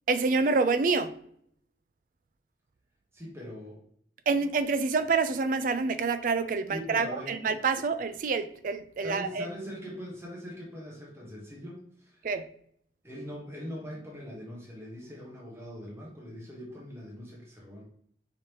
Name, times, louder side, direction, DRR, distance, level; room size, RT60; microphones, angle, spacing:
voice 1, 0.1-1.1 4.3-9.5 12.2-12.5, right 4 dB, 45° right, 11 dB, 0.3 m, -27 dB
voice 2, 3.1-3.8 6.7-7.4 9.0-12.3 13.0-17.8, equal, 15° right, -4 dB, 0.9 m, -42 dB
5.0 x 2.9 x 3.0 m, 0.66 s
head